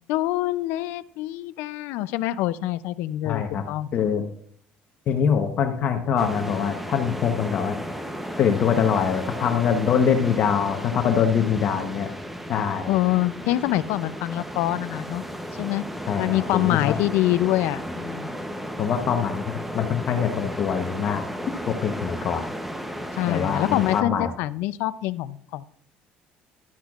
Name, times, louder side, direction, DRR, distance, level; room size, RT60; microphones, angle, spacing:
voice 1, 0.1-3.9 12.9-15.2 15.6-15.8 16.2-18.4 23.1-25.6, left 15 dB, 85° left, 16 dB, 0.4 m, -25 dB
voice 2, 3.2-3.6 3.9-4.2 5.1-7.8 8.4-12.1 12.5-12.9 16.1-17.0 18.8-21.2 21.7-22.4 23.3-24.3, left 7 dB, 50° left, 5 dB, 0.9 m, -24 dB
sound 1, 6.2-24.0, equal, 5° right, 0.8 m, -34 dB
12.0 x 10.0 x 2.4 m, 0.63 s
cardioid pair, 135°, 4 cm